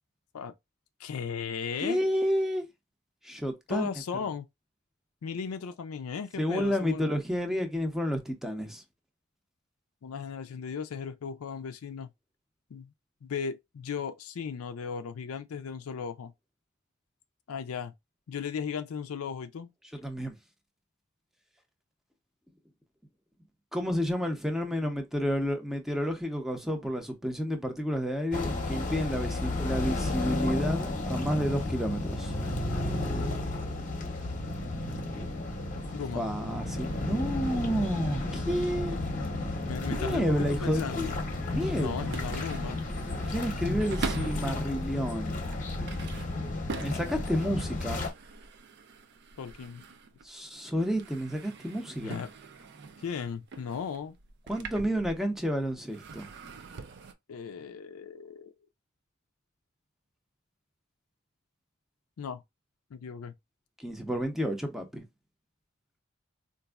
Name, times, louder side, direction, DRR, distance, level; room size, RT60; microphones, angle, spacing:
voice 1, 1.0-2.0 3.7-4.5 5.2-7.0 10.0-12.1 12.7-12.9 13.2-16.3 17.5-17.9 18.3-19.7 35.9-36.2 39.6-41.1 41.7-42.8 49.4-49.9 52.0-52.3 53.0-54.2 57.3-58.5 62.2-62.4 62.9-63.3, left 6 dB, 85° left, 0.4 m, -36 dB
voice 2, 1.8-2.6 3.2-3.9 6.4-8.8 20.0-20.3 23.7-32.3 36.1-39.0 39.9-41.1 41.5-42.0 43.3-45.4 46.7-48.0 50.2-52.2 54.5-56.3 63.8-65.0, equal, ahead, 0.6 m, -30 dB
sound 1, 28.3-48.1, left 2 dB, 35° left, 0.8 m, -32 dB
sound 2, 41.1-44.5 45.1-50.4 50.6-55.5 55.8-57.1, right 4 dB, 55° right, 0.5 m, -44 dB
4.0 x 2.5 x 2.3 m
head